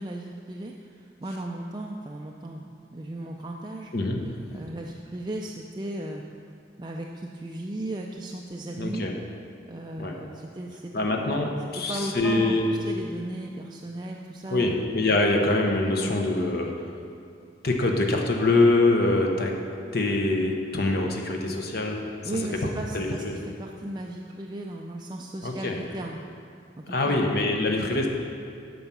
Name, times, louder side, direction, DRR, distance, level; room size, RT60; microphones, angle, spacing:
voice 1, 0.0-3.9 4.2-6.2 6.8-9.0 9.7-11.1 11.9-14.7 22.2-26.2 26.8-27.3, right 1 dB, 20° right, 0 dB, 0.4 m, -36 dB
voice 2, 8.8-9.1 10.0-10.2 10.9-12.8 14.5-16.7 17.6-19.5 19.9-22.0 22.6-22.7 22.9-23.4 25.4-25.8 26.9-28.1, left 2 dB, 55° left, 1 dB, 0.9 m, -24 dB
9.1 x 5.5 x 6.0 m, 2.4 s
head